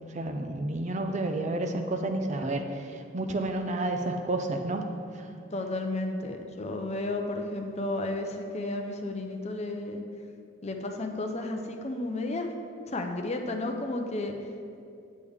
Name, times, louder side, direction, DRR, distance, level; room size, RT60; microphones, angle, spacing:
voice 1, 0.1-4.8, right 2 dB, 35° right, 5 dB, 0.6 m, -30 dB
voice 2, 5.5-10.0 10.6-12.5 12.9-14.3, left 2 dB, 35° left, 4 dB, 0.6 m, -32 dB
8.4 x 8.3 x 3.6 m, 2.5 s
head